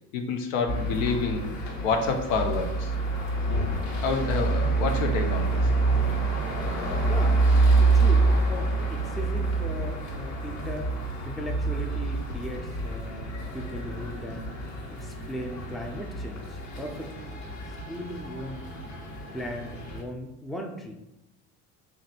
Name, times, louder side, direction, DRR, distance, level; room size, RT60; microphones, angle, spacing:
voice 1, 0.1-2.9 4.0-5.7, left 4 dB, 90° left, 4 dB, 0.7 m, -28 dB
sound 1, 0.7-20.0, right 3 dB, 50° left, 1.2 m, -27 dB
voice 2, 7.0-7.5 7.9-10.9 11.3-14.6 14.9-17.6 17.9-18.7 19.3-20.9, equal, ahead, 3 dB, 0.3 m, -38 dB
3.2 x 2.5 x 4.1 m, 0.89 s
supercardioid pair, 85°, 38 cm